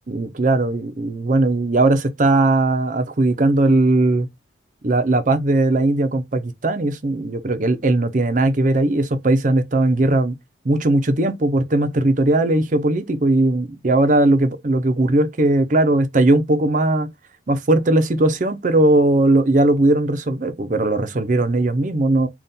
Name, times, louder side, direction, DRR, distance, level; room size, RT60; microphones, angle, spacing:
voice 1, 0.1-4.3 4.8-10.3 10.6-17.1 17.5-22.3, right 2 dB, 45° right, 0.6 m, -18 dB
4.1 x 2.4 x 3.5 m
head